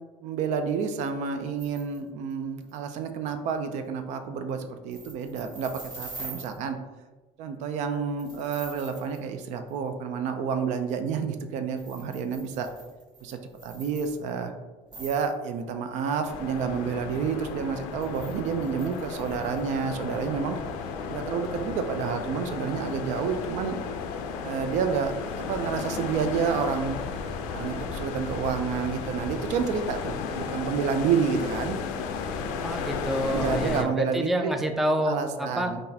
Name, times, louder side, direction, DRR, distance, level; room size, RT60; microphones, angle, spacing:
voice 1, 0.2-6.8 7.4-12.7 13.2-14.5 15.0-20.6 21.1-23.8 24.4-27.0 27.5-31.8 33.3-34.6 35.0-35.8, right 6 dB, 70° right, 7 dB, 0.4 m, -29 dB
sound 1, 1.6-2.0 2.3-2.4 2.6-2.8 4.9-6.6 8.2-9.2 9.7-9.8 11.7-14.5 14.9-15.3 18.0-19.7, right 3 dB, 35° right, 1.0 m, -44 dB
sound 2, 16.3-33.8, left 5 dB, 90° left, 0.4 m, -34 dB
voice 2, 32.6-35.7, right 1 dB, ahead, 4 dB, 0.3 m, -28 dB
3.8 x 2.4 x 2.7 m, 1.2 s
cardioid pair, 105°, 13 cm